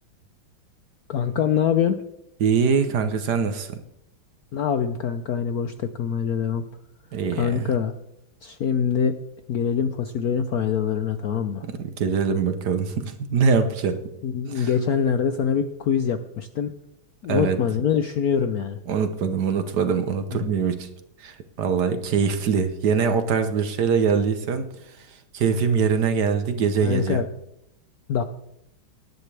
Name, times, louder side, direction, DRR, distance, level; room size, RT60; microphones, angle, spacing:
voice 1, 1.1-2.0 4.5-6.6 7.4-7.9 8.4-9.2 9.5-11.7 14.2-16.7 17.2-18.8 20.3-20.5 26.8-27.3 28.1-28.2, left 7 dB, 70° left, 9 dB, 0.9 m, -24 dB
voice 2, 2.4-3.8 7.1-7.7 11.7-14.0 14.5-14.7 17.3-17.6 18.9-20.9 21.2-24.7 25.3-27.2, right 6 dB, 60° right, 8 dB, 1.4 m, -23 dB
18.5 x 11.0 x 3.3 m, 0.82 s
omnidirectional pair, 2.2 m